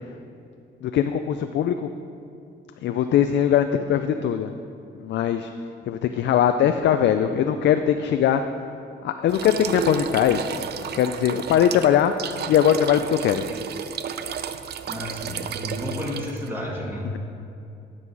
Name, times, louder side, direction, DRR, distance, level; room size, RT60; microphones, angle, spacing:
voice 1, 0.8-1.9 2.8-4.5 5.0-5.5 5.9-8.4 9.0-10.5 10.9-12.1 12.5-13.4 17.1-17.2, left 9 dB, 65° left, 8 dB, 0.4 m, -21 dB
sound 1, 9.3-16.5, right 7 dB, 55° right, 0.5 m, -32 dB
voice 2, 14.8-17.1, left 1 dB, 10° right, -4 dB, 2.3 m, -31 dB
11.0 x 5.5 x 4.7 m, 2.7 s
cardioid pair, 90°, 20 cm